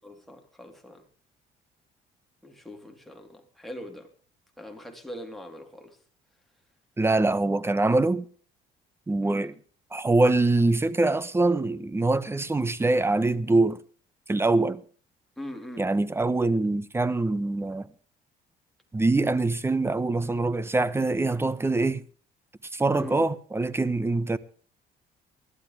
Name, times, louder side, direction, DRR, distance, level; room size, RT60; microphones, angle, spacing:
voice 1, 0.0-1.1 2.4-4.1 4.6-6.0 9.2-9.6 15.4-15.9 23.0-23.3, left 1 dB, ahead, 3.5 m, -42 dB
voice 2, 7.0-8.2 9.1-9.5 9.9-13.8 14.3-14.8 15.8-17.9 18.9-22.0 22.7-24.4, right 2 dB, 15° right, 1.0 m, -24 dB
20.0 x 12.5 x 3.4 m
cardioid pair, 110°, 17 cm